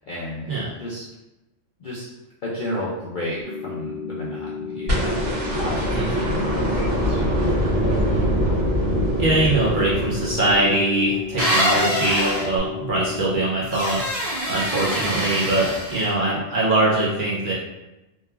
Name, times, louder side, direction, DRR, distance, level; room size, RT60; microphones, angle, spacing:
voice 1, 0.1-0.5 0.8-1.1 1.8-2.0 2.4-5.2 5.5-7.2 14.9-15.2, left 1 dB, 65° left, -6 dB, 0.5 m, -32 dB
sound 1, 3.4-13.4, left 6 dB, 90° left, 1.0 m, -33 dB
sound 2, 4.9-11.1 12.6-12.7, equal, 75° right, 1.5 m, -23 dB
voice 2, 5.9-6.3 9.2-14.0 14.5-17.5, right 2 dB, 55° right, -6 dB, 0.6 m, -22 dB
sound 3, 11.4-12.5 13.7-16.1, equal, 40° right, 1.1 m, -24 dB
3.0 x 2.3 x 2.2 m, 0.99 s
omnidirectional pair, 1.3 m